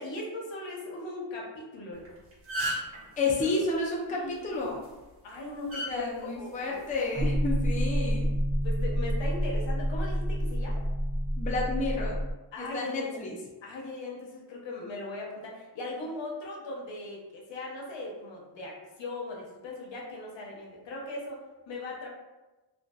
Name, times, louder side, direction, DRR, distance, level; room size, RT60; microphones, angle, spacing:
voice 1, 0.0-2.1 3.3-3.5 4.1-4.5 5.2-6.8 7.9-8.0 8.6-10.8 12.5-13.2 13.6-22.1, left 2 dB, 65° left, -2 dB, 0.8 m, -39 dB
sound 1, 1.9-2.1 2.3-3.0 4.6-4.9 5.7-5.9 6.9-7.2, right 1 dB, 70° right, 1.1 m, -31 dB
voice 2, 3.2-4.9 5.9-8.3 11.4-12.2 12.6-13.3, left 3 dB, 15° left, -3 dB, 0.5 m, -31 dB
sound 2, 7.2-12.3, equal, ahead, 0.9 m, -28 dB
2.5 x 2.4 x 2.3 m, 1.1 s
cardioid pair, 65°, 49 cm